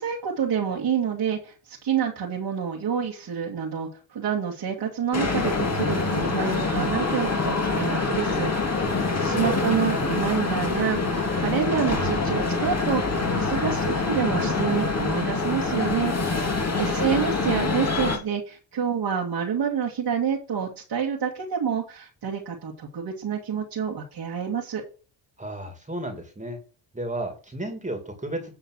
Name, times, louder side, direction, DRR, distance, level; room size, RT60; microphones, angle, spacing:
voice 1, 0.0-8.5 8.8-24.8, right 7 dB, 60° right, -3 dB, 2.1 m, -28 dB
sound 1, 5.1-18.2, left 3 dB, 35° left, 2.7 m, -25 dB
voice 2, 8.9-9.6 16.3-17.3 25.4-26.6 26.9-28.5, right 1 dB, 15° right, 5 dB, 2.4 m, -34 dB
10.0 x 3.9 x 6.1 m, 0.37 s
cardioid pair, 75°, 45 cm